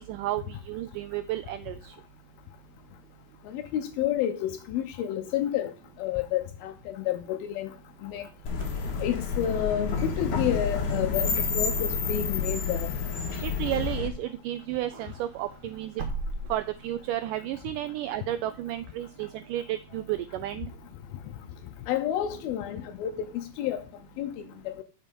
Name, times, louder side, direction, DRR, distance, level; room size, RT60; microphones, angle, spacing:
voice 1, 0.0-2.0 13.4-15.9 16.5-20.7, right 13 dB, 90° right, 1.8 m, -32 dB
voice 2, 3.5-5.7 6.0-7.7 8.0-8.3 9.0-12.9 21.9-23.9 24.2-24.8, left 11 dB, 85° left, 2.6 m, -30 dB
sound 1, 8.5-14.1, left 5 dB, 60° left, 2.9 m, -29 dB
Wind / Car, 8.5-14.3 14.6-17.1, right 3 dB, 50° right, 1.7 m, -40 dB
7.2 x 6.6 x 5.3 m
omnidirectional pair, 4.3 m